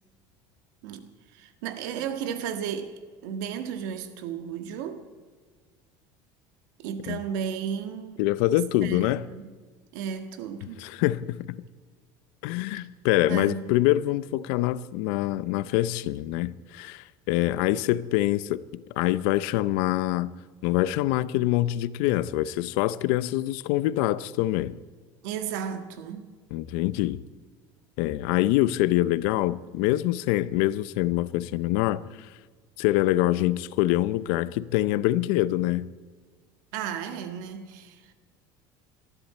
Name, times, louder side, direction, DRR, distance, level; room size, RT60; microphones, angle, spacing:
voice 1, 1.3-2.9 3.2-5.0 6.8-8.2 8.5-9.5 9.9-10.8 12.7-12.9 13.3-13.7 25.2-26.3 36.7-38.1, right 8 dB, 80° right, 1.7 m, -34 dB
voice 2, 8.2-9.2 10.8-11.6 12.4-18.6 19.0-20.3 20.6-24.8 26.5-27.2 28.0-32.3 32.8-35.9, left 15 dB, 75° left, 0.6 m, -25 dB
20.0 x 13.5 x 4.3 m
cardioid pair, 145°, 10 cm